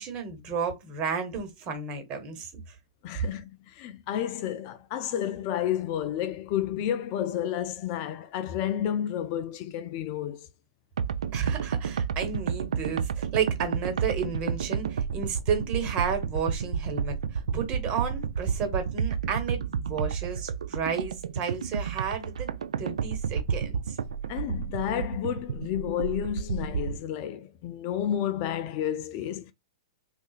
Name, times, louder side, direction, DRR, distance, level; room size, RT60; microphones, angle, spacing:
voice 1, 0.0-2.8 11.3-22.5 22.8-24.0, right 6 dB, 35° right, 1.2 m, -32 dB
voice 2, 3.0-10.5 24.3-29.5, left 10 dB, 40° left, 0.4 m, -31 dB
sound 1, 11.0-27.0, right 7 dB, 80° right, 0.3 m, -31 dB
3.7 x 2.4 x 2.4 m
hypercardioid pair, 120°, 3 cm